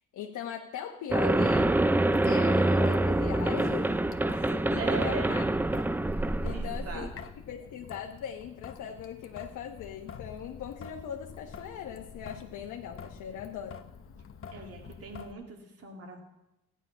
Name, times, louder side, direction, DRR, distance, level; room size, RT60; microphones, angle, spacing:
voice 1, 0.1-1.8 2.2-4.0 4.3-5.4 5.9-7.1 7.5-13.8, left 8 dB, 80° left, 1 dB, 1.2 m, -40 dB
sound 1, 1.1-7.2, right 2 dB, 5° right, 0.4 m, -26 dB
Traffic noise roadway noise / Drip / Trickle dribble, 1.3-15.3, left 6 dB, 45° left, 1.0 m, -47 dB
voice 2, 4.8-5.4 6.5-7.1 14.5-16.2, right 4 dB, 50° right, 3 dB, 2.6 m, -39 dB
15.0 x 9.8 x 5.7 m, 0.93 s
cardioid pair, 90°, 30 cm